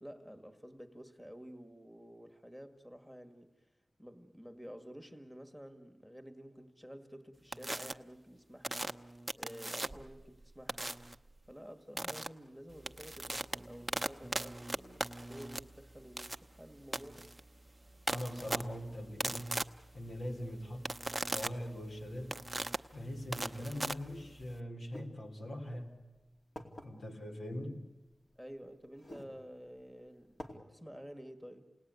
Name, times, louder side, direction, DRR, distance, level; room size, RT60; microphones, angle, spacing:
voice 1, 0.0-3.7 4.0-8.9 9.4-11.0 11.5-17.3 28.4-31.7, equal, 10° left, 1.7 m, -51 dB
sound 1, 7.5-7.9 8.6-10.1 10.7-11.1 12.0-12.3 12.7-24.6, right 1 dB, 15° right, 0.8 m, -39 dB
voice 2, 18.1-19.6 19.9-20.9 21.3-22.4 22.9-26.0 26.8-27.9, equal, 75° left, 3.5 m, -42 dB
sound 2, 24.9-25.1 25.9-26.0 26.6-26.9 28.1-28.2 28.9-29.3 29.8-29.9 30.4-30.6, left 1 dB, 55° left, 2.6 m, -47 dB
28.0 x 19.0 x 9.5 m
cardioid pair, 55°, 0 cm